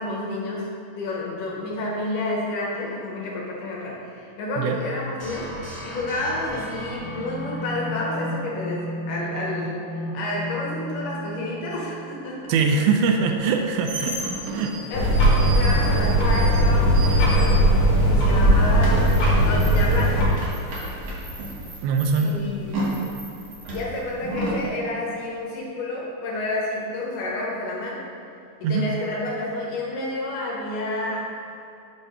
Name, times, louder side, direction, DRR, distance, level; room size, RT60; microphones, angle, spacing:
voice 1, 0.0-12.6 14.0-14.1 14.9-17.7 18.1-20.4 22.1-22.9 23.7-28.1 28.6-31.5, left 2 dB, 70° left, -3 dB, 2.2 m, -30 dB
sound 1, 5.2-12.1, equal, 40° right, 1.5 m, -34 dB
voice 2, 12.5-14.2 14.5-14.8 21.8-22.4 28.6-28.9, right 5 dB, 80° right, 3 dB, 2.3 m, -22 dB
sound 2, 13.4-18.0 18.3-24.7, right 2 dB, 60° right, 1.8 m, -33 dB
sound 3, 14.9-20.3, right 1 dB, 55° left, 2.1 m, -18 dB
6.4 x 4.4 x 5.5 m, 2.7 s
omnidirectional pair, 4.3 m